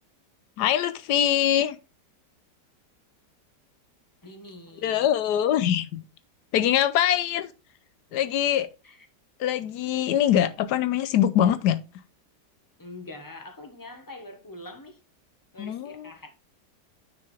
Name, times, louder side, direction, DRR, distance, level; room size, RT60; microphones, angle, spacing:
voice 1, 0.6-1.8 4.8-6.0 6.5-7.5 8.1-8.7 9.4-11.8 15.6-16.1, left 10 dB, 75° left, 1.1 m, -23 dB
voice 2, 4.2-5.1 8.8-9.0 12.8-15.0 15.5-16.3, left 2 dB, 15° left, 0.9 m, -44 dB
9.5 x 4.5 x 3.2 m
omnidirectional pair, 1.8 m